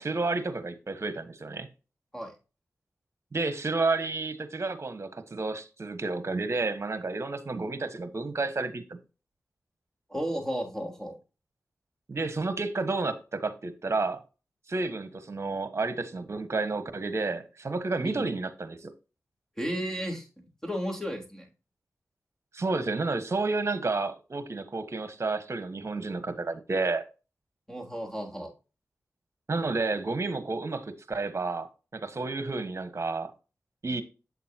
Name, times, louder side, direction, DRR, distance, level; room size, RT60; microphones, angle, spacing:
voice 1, 0.0-1.7 3.3-8.8 12.1-14.2 14.7-18.9 22.5-27.0 29.5-33.3 33.8-34.0, right 3 dB, 50° right, 1.4 m, -31 dB
voice 2, 10.1-11.2 18.0-18.3 19.6-20.3 20.6-21.5 27.7-28.5, equal, 10° left, 3.9 m, -33 dB
8.4 x 6.7 x 2.9 m
cardioid pair, 45°, 6 cm